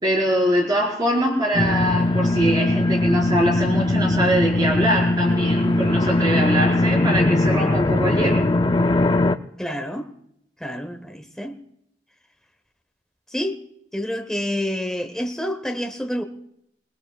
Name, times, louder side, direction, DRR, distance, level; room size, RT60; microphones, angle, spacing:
voice 1, 0.0-8.4, right 1 dB, 25° right, 5.1 m, -23 dB
alien boiler room, 1.5-9.4, left 2 dB, 25° left, 0.5 m, -20 dB
voice 2, 9.6-10.1 10.6-11.6 13.3-13.6 13.9-16.2, equal, 5° left, 1.1 m, -28 dB
26.5 x 19.5 x 2.4 m
head